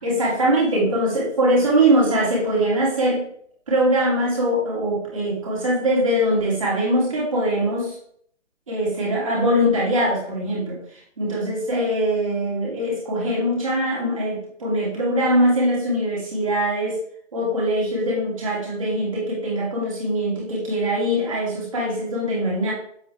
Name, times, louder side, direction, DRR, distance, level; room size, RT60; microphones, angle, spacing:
voice 1, 0.0-3.2 3.7-8.0 8.7-10.8 11.2-17.0 17.3-22.7, right 1 dB, 25° right, -5 dB, 2.8 m, -22 dB
7.6 x 7.2 x 3.5 m, 0.64 s
hypercardioid pair, 175°, 37 cm